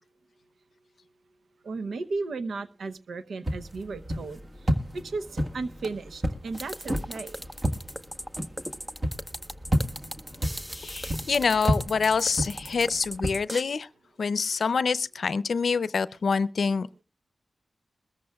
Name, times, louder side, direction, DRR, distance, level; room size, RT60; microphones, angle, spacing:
voice 1, 1.6-4.4 4.9-7.4, right 3 dB, 90° right, 12 dB, 0.8 m, -35 dB
sound 1, 3.4-13.4, equal, 30° right, 1.6 m, -31 dB
sound 2, 6.5-13.6, equal, 10° right, 0.8 m, -39 dB
voice 2, 10.7-13.9 14.2-17.0, left 5 dB, 75° left, 17 dB, 0.5 m, -26 dB
22.0 x 14.0 x 2.3 m, 0.31 s
cardioid pair, 65°, 0 cm